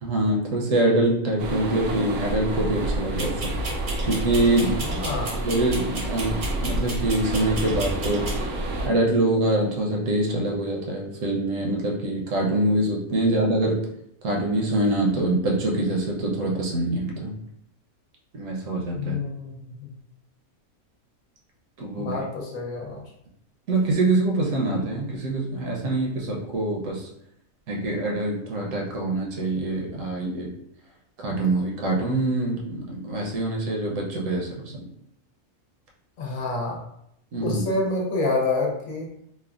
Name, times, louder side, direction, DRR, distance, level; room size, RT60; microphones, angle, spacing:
voice 1, 0.0-3.5 4.0-4.8 5.4-8.3 8.8-13.8 14.2-17.3 18.3-19.1 21.8-22.2 23.7-27.1 27.7-30.5 31.2-34.7 37.3-37.6, right 2 dB, 70° right, -1 dB, 1.0 m, -24 dB
sound 1, 1.4-8.9, right 1 dB, 90° right, 1.1 m, -29 dB
sound 2, 3.2-8.4, right 2 dB, 45° right, 0.7 m, -34 dB
voice 2, 4.8-5.4 18.9-19.9 21.9-23.0 36.2-36.8 37.4-39.1, left 2 dB, 70° left, -1 dB, 1.1 m, -28 dB
3.2 x 2.1 x 2.4 m, 0.75 s
omnidirectional pair, 1.5 m